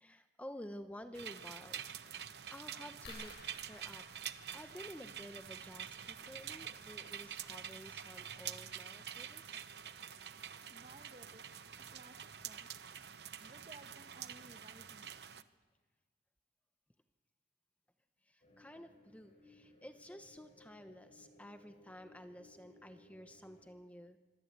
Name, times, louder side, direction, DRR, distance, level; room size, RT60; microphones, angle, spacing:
voice 1, 0.0-4.0 4.5-9.5 18.2-24.2, equal, 10° left, 8 dB, 0.8 m, -52 dB
sound 1, 1.1-15.4, right 9 dB, 65° right, 0.9 m, -47 dB
sound 2, 3.1-5.4 7.0-7.2 7.8-7.9 8.2-8.4, left 2 dB, 70° left, 7.8 m, -56 dB
voice 2, 10.7-11.5 11.8-12.7 13.4-15.1, right 2 dB, 35° right, 9 dB, 1.2 m, -58 dB
sound 3, 18.4-23.7, left 1 dB, 40° left, 6.5 m, -63 dB
25.5 x 20.5 x 8.2 m, 1.4 s
head